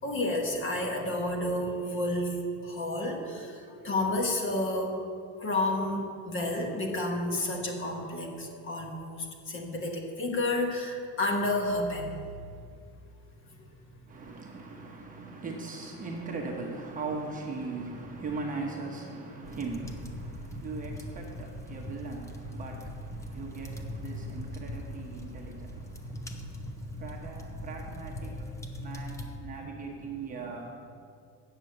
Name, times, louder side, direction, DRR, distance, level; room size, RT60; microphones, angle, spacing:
voice 1, 0.0-5.0 5.4-12.1 13.4-13.7, left 1 dB, 30° left, 2 dB, 1.3 m, -31 dB
voice 2, 14.1-30.7, right 3 dB, 20° right, -1 dB, 1.0 m, -39 dB
sound 1, 19.4-29.4, left 1 dB, 10° left, 0.4 m, -40 dB
8.9 x 6.8 x 7.8 m, 2.3 s
cardioid pair, 170°, 40 cm